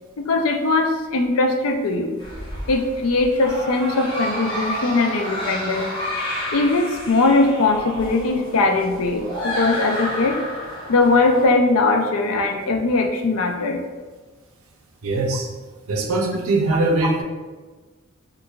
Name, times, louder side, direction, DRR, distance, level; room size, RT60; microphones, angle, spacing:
voice 1, 0.2-2.2 2.7-5.9 6.5-10.4 10.9-13.8, left 3 dB, 75° left, 4 dB, 0.4 m, -20 dB
sound 1, 2.2-11.4, equal, 20° left, 0.9 m, -30 dB
voice 2, 15.0-15.5 15.9-17.2, right 2 dB, 75° right, 2 dB, 0.5 m, -21 dB
4.5 x 2.5 x 2.3 m, 1.3 s
head